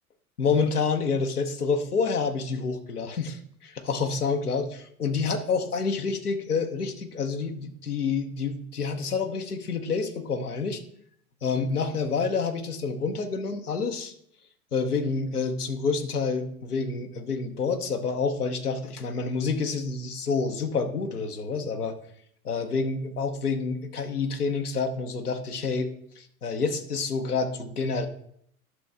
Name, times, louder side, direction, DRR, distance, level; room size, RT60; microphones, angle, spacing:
voice 1, 0.4-10.8 11.4-14.1 14.7-21.9 22.4-25.9 26.2-28.1, left 4 dB, 80° left, 5 dB, 1.0 m, -28 dB
11.0 x 6.2 x 3.5 m, 0.67 s
figure-of-eight pair, 80°, 45 cm